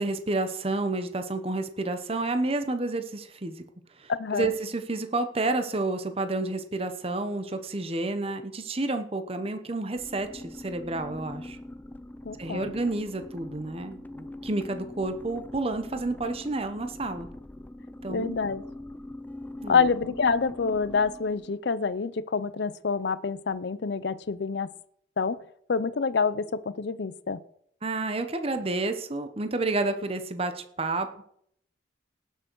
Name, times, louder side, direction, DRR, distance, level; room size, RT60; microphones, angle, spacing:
voice 1, 0.0-3.6 4.0-11.6 12.4-17.3 18.0-18.4 19.6-19.9 27.8-31.3, right 2 dB, 30° right, 8 dB, 0.9 m, -30 dB
voice 2, 4.2-4.5 12.2-12.7 18.1-18.6 19.7-24.7 25.2-25.4 25.7-27.4, left 5 dB, 60° left, 16 dB, 0.5 m, -27 dB
sound 1, 9.9-21.6, left 1 dB, 10° left, 0.5 m, -42 dB
18.0 x 6.6 x 4.6 m, 0.68 s
head